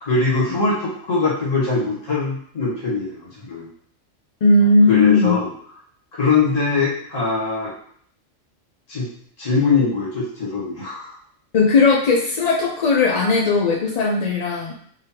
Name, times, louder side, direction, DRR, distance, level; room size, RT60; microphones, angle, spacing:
voice 1, 0.0-3.7 4.9-5.5 6.1-7.7 8.9-9.1 9.4-11.1, left 4 dB, 85° left, -8 dB, 1.9 m, -22 dB
voice 2, 4.4-5.4 11.5-14.7, left 3 dB, 70° left, -1 dB, 0.3 m, -17 dB
3.6 x 3.4 x 2.8 m, 0.62 s
omnidirectional pair, 1.3 m